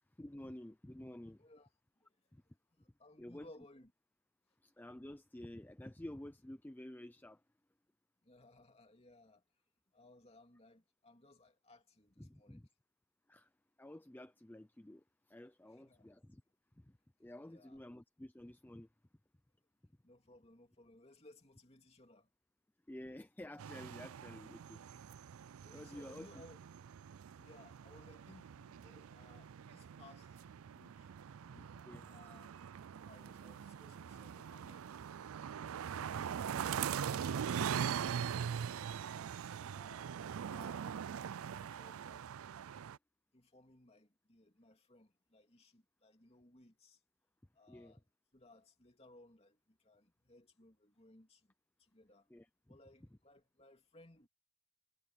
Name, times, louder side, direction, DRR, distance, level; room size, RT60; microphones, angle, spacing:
voice 1, 0.2-1.4 2.3-2.4 3.2-3.5 4.6-7.4 12.2-12.7 13.3-13.5 13.8-16.4 16.8-18.9 22.9-24.8 25.7-26.4 31.5-32.1 47.7-48.0 52.3-52.8, left 1 dB, 10° left, 0.4 m, -51 dB
voice 2, 1.4-1.7 2.8-3.9 8.2-9.4 9.9-12.6 15.7-16.1 17.4-17.8 20.0-22.3 24.6-24.8 25.6-26.6 27.4-31.1 32.0-32.5 33.0-35.0 37.7-39.0 39.7-40.1 40.5-41.1 41.5-42.3 43.3-47.0 47.5-48.0 48.3-51.5 51.8-52.3 52.7-54.3, left 2 dB, 25° left, 2.8 m, -62 dB
sound 1, 23.6-43.0, right 8 dB, 70° right, 0.4 m, -42 dB
head